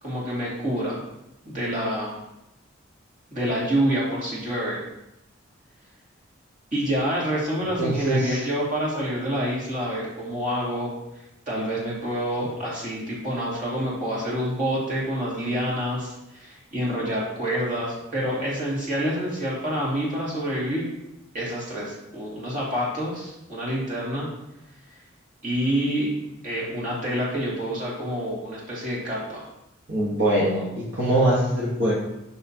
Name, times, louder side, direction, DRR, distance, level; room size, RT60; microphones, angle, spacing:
voice 1, 0.0-1.0 1.4-2.1 3.3-4.8 6.7-10.9 11.5-20.9 21.3-24.3 25.4-26.1 26.4-29.4, equal, 40° right, -6 dB, 2.3 m, -27 dB
voice 2, 7.8-8.4 29.9-31.9, right 1 dB, 60° right, -8 dB, 1.3 m, -23 dB
6.0 x 5.6 x 2.9 m, 0.89 s
head